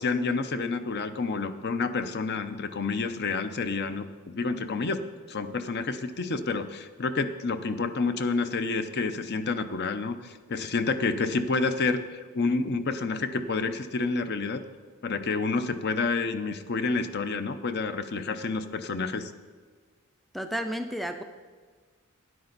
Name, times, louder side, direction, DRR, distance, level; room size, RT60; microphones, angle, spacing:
voice 1, 0.0-5.0 5.3-14.6 15.0-19.3, left 4 dB, 50° left, 10 dB, 0.6 m, -29 dB
voice 2, 20.3-21.2, equal, ahead, 7 dB, 0.4 m, -32 dB
12.5 x 9.7 x 4.0 m, 1.5 s
head